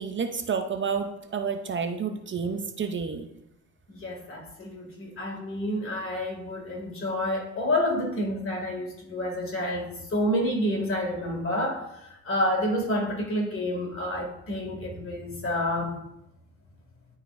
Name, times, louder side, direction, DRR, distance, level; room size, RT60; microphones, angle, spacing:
voice 1, 0.0-3.3, right 6 dB, 40° right, 7 dB, 0.6 m, -30 dB
voice 2, 4.0-11.8 12.2-15.9, left 1 dB, 45° left, 0 dB, 2.3 m, -29 dB
12.0 x 4.1 x 2.6 m, 0.84 s
cardioid pair, 90°, 30 cm